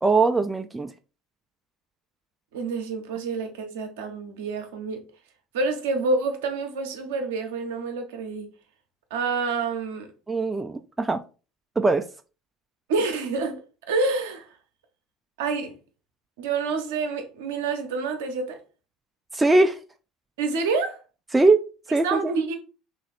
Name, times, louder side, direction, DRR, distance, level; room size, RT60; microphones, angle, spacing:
voice 1, 0.0-0.9 10.3-11.2 11.8-12.0 19.3-19.8 21.3-22.3, right 3 dB, 15° right, 0.3 m, -21 dB
voice 2, 2.5-5.0 5.5-8.5 9.1-10.1 12.9-13.6 13.9-14.5 15.4-15.7 16.4-18.6 20.4-21.0 22.0-22.5, right 4 dB, 70° right, 0.6 m, -27 dB
3.1 x 2.5 x 4.0 m
figure-of-eight pair, 65°, 0 cm